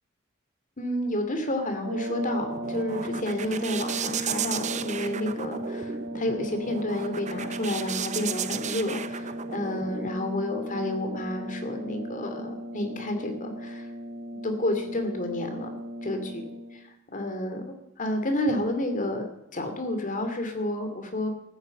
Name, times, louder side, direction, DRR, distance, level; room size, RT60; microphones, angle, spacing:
voice 1, 0.8-13.9 14.4-15.7 16.0-16.4 16.7-21.3, left 1 dB, 40° left, 6 dB, 2.6 m, -30 dB
sound 1, 1.7-16.9, right 1 dB, 65° right, 3.5 m, -36 dB
sound 2, 2.2-10.1, right 7 dB, 35° right, 0.7 m, -35 dB
14.5 x 9.8 x 8.3 m, 0.87 s
head